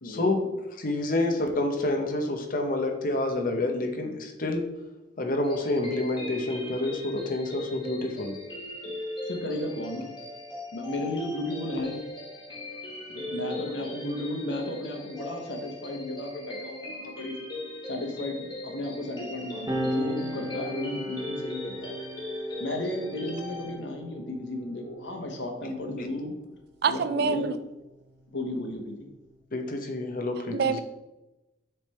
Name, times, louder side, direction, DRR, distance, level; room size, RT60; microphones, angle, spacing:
voice 1, 0.0-4.7 5.2-8.4 29.5-30.8, left 2 dB, 50° left, 5 dB, 0.8 m, -28 dB
sound 1, 5.4-23.7, left 1 dB, 25° left, 2.1 m, -39 dB
voice 2, 9.2-10.1 10.7-12.0 13.1-17.3 17.9-21.9 22.6-26.4 26.9-27.5 28.3-29.1, left 1 dB, 90° left, 3 dB, 1.1 m, -34 dB
sound 2, 19.7-26.6 27.6-29.4, equal, 20° right, 0.8 m, -38 dB
voice 3, 26.8-27.6 30.5-30.8, right 6 dB, 65° right, 12 dB, 0.4 m, -25 dB
6.7 x 3.4 x 4.2 m, 1.0 s
head